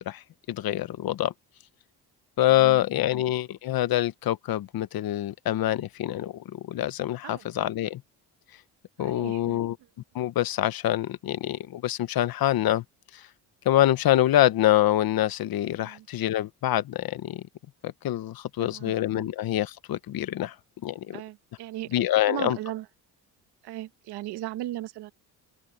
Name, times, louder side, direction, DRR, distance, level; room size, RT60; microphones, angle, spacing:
voice 1, 0.0-1.3 2.4-8.0 9.0-9.8 10.1-12.8 13.1-13.3 13.6-17.4 17.8-20.6 20.8-21.2 21.9-22.6, left 13 dB, 65° left, 1.1 m, -25 dB
voice 2, 2.5-2.8 7.2-7.4 9.0-9.6 15.8-16.0 18.6-19.3 21.1-21.9 22.3-22.8 23.6-25.1, right 14 dB, 85° right, 1.2 m, -37 dB
open air
cardioid pair, 100°, 38 cm